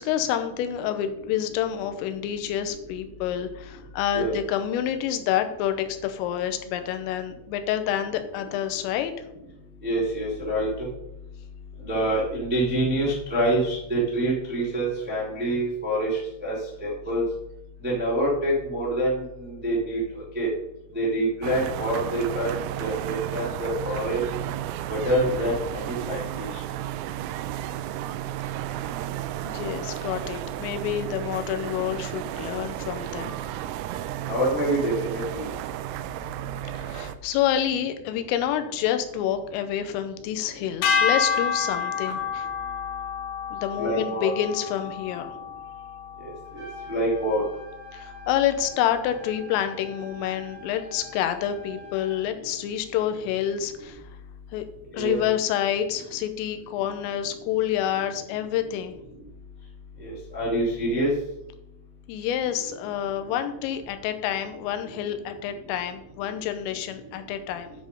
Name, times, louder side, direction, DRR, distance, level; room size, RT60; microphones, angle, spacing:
voice 1, 0.0-9.1 29.4-33.3 36.8-42.5 43.5-45.3 47.9-54.0 54.5-54.6 54.9-59.0 62.1-67.7, left 10 dB, 90° left, 8 dB, 3.4 m, -28 dB
voice 2, 9.8-10.9 11.9-16.5 16.8-17.2 17.8-20.5 20.9-22.5 22.8-24.2 24.9-25.6 25.8-26.5 34.3-35.5 43.8-44.3 46.5-47.4 55.0-55.2 60.0-61.1, right 1 dB, 5° right, -5 dB, 0.7 m, -26 dB
sound 1, 21.4-37.2, right 12 dB, 90° right, 3.2 m, -33 dB
sound 2, 40.8-47.2, left 6 dB, 75° left, 3.3 m, -29 dB
Trumpet, 46.4-52.2, left 2 dB, 75° right, 1.4 m, -45 dB
9.8 x 5.1 x 5.2 m, 0.87 s
omnidirectional pair, 5.7 m